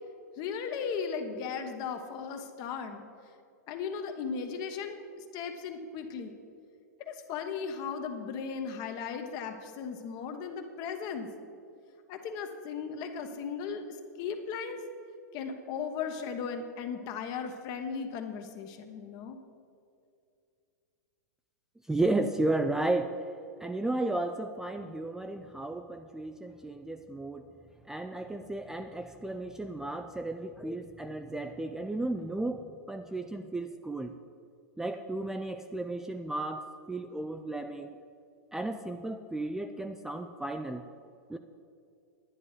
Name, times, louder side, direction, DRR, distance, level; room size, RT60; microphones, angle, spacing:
voice 1, 0.4-3.0 3.7-6.3 7.0-11.3 12.1-14.8 15.3-19.4, left 6 dB, 40° left, 6 dB, 1.2 m, -37 dB
voice 2, 21.9-23.2 23.6-27.5 27.9-34.1 34.8-37.9 38.5-40.8 41.3-41.4, right 2 dB, 5° right, 7 dB, 0.3 m, -33 dB
10.0 x 9.8 x 4.9 m, 2.5 s
hypercardioid pair, 120°, 10 cm